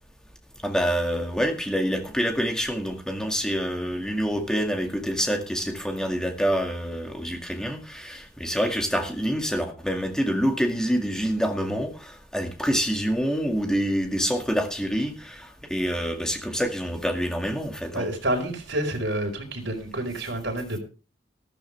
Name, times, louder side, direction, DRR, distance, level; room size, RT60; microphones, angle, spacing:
voice 1, 0.6-18.0, equal, 5° left, 2.0 m, -26 dB
voice 2, 17.9-20.8, right 1 dB, 60° right, 4.8 m, -28 dB
14.5 x 13.5 x 3.4 m
head